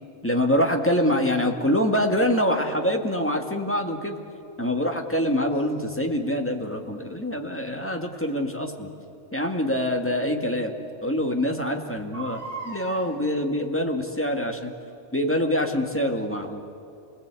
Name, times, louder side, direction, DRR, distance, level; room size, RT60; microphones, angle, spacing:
voice 1, 0.2-4.2 4.6-8.9 9.3-10.7 11.0-14.7 15.1-16.6, left 1 dB, 10° left, 3 dB, 1.9 m, -25 dB
Crying sobbing, 5.5-5.7 8.1-8.3 9.9-10.0 10.5-10.6 10.8-10.9 12.0-13.0 14.0-14.3 14.9-15.0, right 3 dB, 30° right, 8.0 m, -38 dB
28.5 x 20.0 x 8.3 m, 2.7 s
omnidirectional pair, 1.2 m